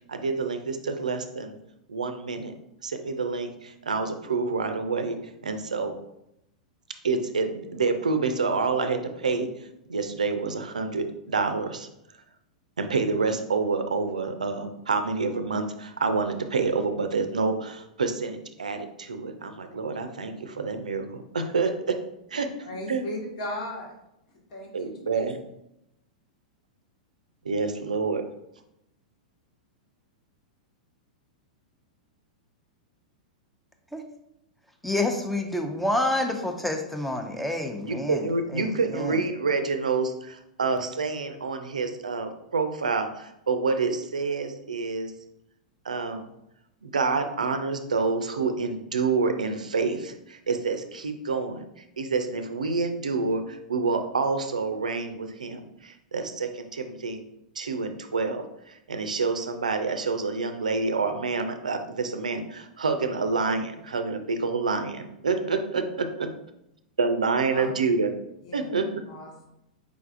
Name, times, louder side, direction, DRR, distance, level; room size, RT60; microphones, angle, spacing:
voice 1, 0.1-1.6 1.9-2.5 2.8-6.0 7.0-9.5 9.9-11.9 12.8-22.0 22.3-22.5 22.9-23.1 24.7-25.4 27.4-28.2 37.9-45.1 45.8-46.3 46.8-51.6 52.0-57.2 57.6-66.3 67.0-68.2 68.5-68.9, right 4 dB, 80° right, 7 dB, 0.5 m, -28 dB
voice 2, 22.7-23.9 24.5-25.3 67.5-67.7 68.4-68.7 69.1-69.5, left 1 dB, 60° left, -2 dB, 1.3 m, -37 dB
voice 3, 34.8-39.2, left 1 dB, 5° left, 4 dB, 0.5 m, -28 dB
5.0 x 3.3 x 2.5 m, 0.83 s
figure-of-eight pair, 100°, 4 cm